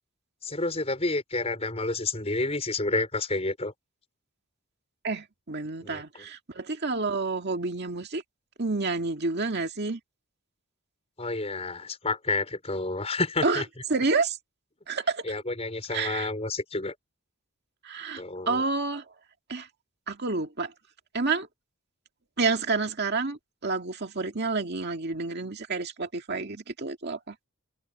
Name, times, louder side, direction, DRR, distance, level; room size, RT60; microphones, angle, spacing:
voice 1, 0.4-3.7 5.8-6.3 11.2-13.7 15.2-17.0 18.2-18.6, left 3 dB, 30° left, 5.2 m, -30 dB
voice 2, 5.0-8.2 8.6-10.0 13.4-13.6 13.9-14.4 14.9-15.2 15.9-16.3 17.8-19.1 19.5-19.7 20.1-20.7 21.1-21.5 22.4-27.4, right 3 dB, 50° right, 2.1 m, -29 dB
head